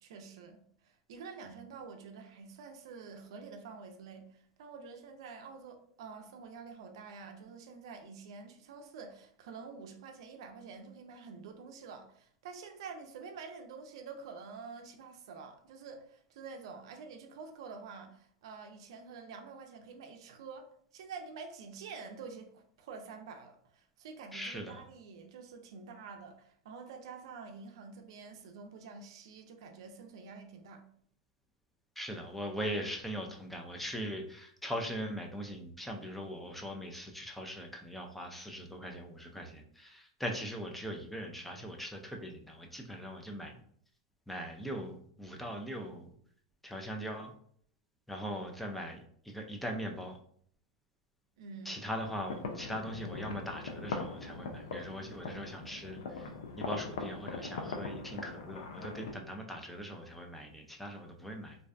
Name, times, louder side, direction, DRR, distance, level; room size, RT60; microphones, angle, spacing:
voice 1, 0.0-20.7 20.9-30.8 51.4-51.9, right 5 dB, 75° right, 5 dB, 0.4 m, -48 dB
voice 2, 24.3-24.8 32.0-43.6 44.3-46.1 46.6-47.3 48.1-50.2 51.6-56.3 56.6-61.6, equal, 5° left, 2 dB, 0.4 m, -40 dB
sound 1, 52.0-59.1, left 4 dB, 80° left, 0.4 m, -41 dB
2.5 x 2.2 x 2.4 m, 0.62 s
hypercardioid pair, 120°, 3 cm